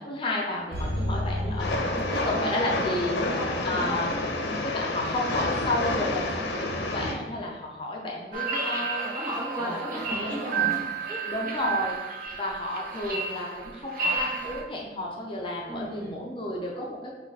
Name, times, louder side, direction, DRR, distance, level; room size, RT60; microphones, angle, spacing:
voice 1, 0.0-3.4 3.6-4.2 4.6-9.1 9.6-9.8 10.2-10.8 11.2-11.9 12.3-17.1, left 1 dB, 30° left, -2 dB, 0.5 m, -32 dB
sound 1, 0.7-2.9 3.2-3.3, left 1 dB, 65° right, 1.1 m, -31 dB
voice 2, 1.0-1.7 1.9-2.5 2.9-4.7 8.7-10.8 11.1-11.2 11.5-11.7 15.7-16.2, equal, 25° right, -5 dB, 1.1 m, -37 dB
Train, 1.6-7.1, left 2 dB, 70° left, 0.6 m, -29 dB
sound 2, 8.3-14.6, right 4 dB, 50° right, 0.7 m, -31 dB
4.3 x 2.4 x 4.6 m, 1.2 s
head